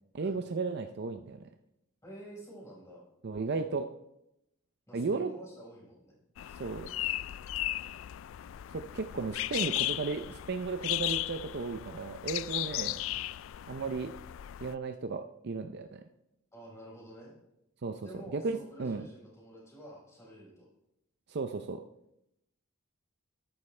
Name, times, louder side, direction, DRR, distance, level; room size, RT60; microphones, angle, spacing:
voice 1, 0.1-1.5 3.2-3.9 4.9-5.3 6.6-6.9 8.7-13.0 13.7-14.1 14.6-16.0 17.8-19.0 21.3-21.8, right 4 dB, 55° right, 7 dB, 0.5 m, -35 dB
voice 2, 2.0-3.0 4.9-6.1 12.7-13.3 16.5-17.3 18.0-20.7, right 1 dB, 15° left, -4 dB, 4.5 m, -49 dB
sound 1, 6.4-14.7, left 15 dB, 65° left, 0.3 m, -36 dB
13.5 x 11.5 x 3.3 m, 0.84 s
head